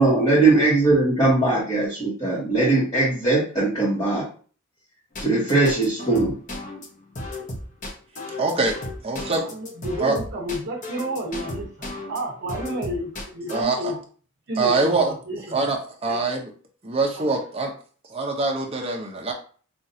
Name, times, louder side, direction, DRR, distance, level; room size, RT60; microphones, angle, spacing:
voice 1, 0.0-4.2 5.2-6.4, right 2 dB, 20° left, -8 dB, 1.2 m, -20 dB
sound 1, 5.1-12.2 12.5-13.6, left 2 dB, 35° left, 0.8 m, -34 dB
voice 2, 8.4-8.8 9.0-9.4 10.0-10.2 13.5-13.9 14.6-15.1 15.5-16.5 16.8-17.7 18.1-19.3, right 3 dB, 25° right, 0 dB, 0.7 m, -24 dB
voice 3, 9.2-14.0 14.5-15.6 16.1-16.3 17.1-17.4, right 1 dB, 55° right, -2 dB, 1.0 m, -31 dB
5.3 x 2.5 x 2.7 m, 0.42 s
head